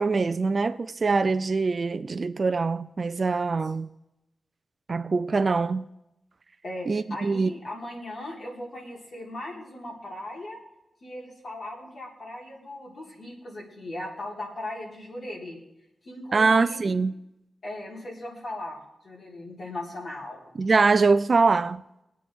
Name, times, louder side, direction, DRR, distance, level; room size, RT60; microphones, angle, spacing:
voice 1, 0.0-3.9 4.9-5.8 6.9-7.5 16.3-17.1 20.6-21.8, right 4 dB, 35° right, 0.4 m, -23 dB
voice 2, 6.6-10.6 11.0-15.6 16.0-16.9 17.6-20.5, left 1 dB, 45° left, 3.8 m, -38 dB
23.0 x 8.5 x 3.6 m
wide cardioid pair, 155°, 0 cm